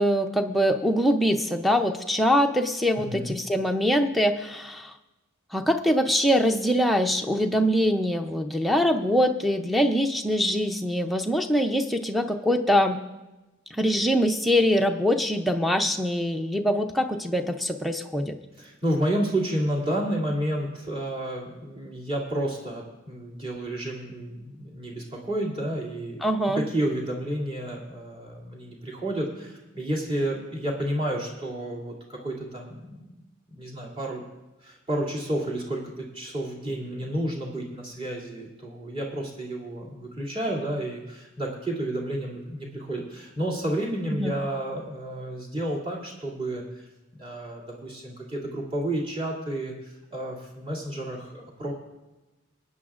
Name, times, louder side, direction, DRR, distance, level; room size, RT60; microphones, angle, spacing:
voice 1, 0.0-4.9 5.5-13.0 13.7-18.4 26.2-26.6 44.1-44.3, equal, ahead, 3 dB, 0.5 m, -23 dB
voice 2, 3.0-3.3 18.6-26.2 26.5-33.2 33.5-34.2 34.6-46.9 47.2-51.7, right 1 dB, 25° right, -4 dB, 2.7 m, -31 dB
24.0 x 9.3 x 2.5 m, 1.1 s
head